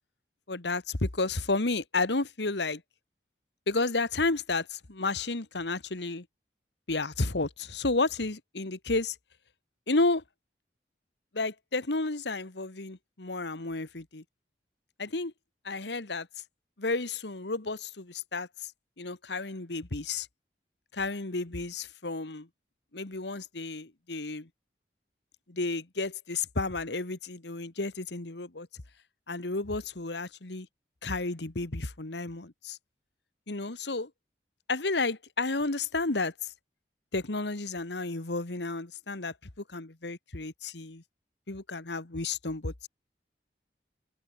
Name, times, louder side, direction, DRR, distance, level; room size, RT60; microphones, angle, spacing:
voice 1, 0.5-2.8 3.7-6.2 6.9-9.1 9.9-10.2 11.3-14.2 15.0-15.3 15.6-16.3 16.8-18.7 19.0-20.3 20.9-22.5 22.9-24.5 25.5-28.7 29.3-30.7 31.0-32.8 33.5-34.1 34.7-36.5 37.1-41.0 41.5-42.7, left 3 dB, 70° left, 1.6 m, -32 dB
open air
head